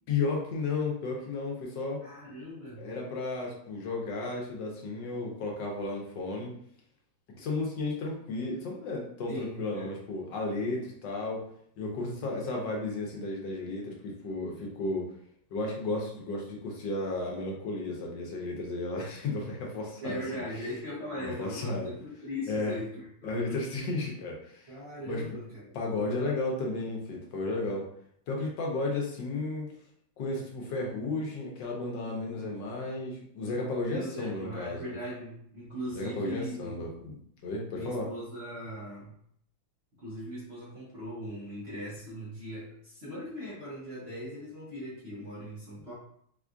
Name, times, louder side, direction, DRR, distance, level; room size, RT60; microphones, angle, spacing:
voice 1, 0.1-2.0 2.8-6.6 7.4-11.4 11.8-15.1 15.5-20.2 21.1-21.9 22.5-22.8 23.2-24.7 25.1-25.2 25.7-27.9 28.3-29.7 30.2-35.0 35.9-37.1 37.4-38.1, left 3 dB, 75° left, -1 dB, 1.4 m, -33 dB
voice 2, 2.0-2.9 9.3-9.9 12.2-12.5 20.0-23.6 24.7-25.8 33.8-36.8 37.7-39.1 40.0-45.9, equal, 50° right, -8 dB, 0.8 m, -39 dB
4.3 x 2.3 x 2.4 m, 0.66 s
omnidirectional pair, 2.1 m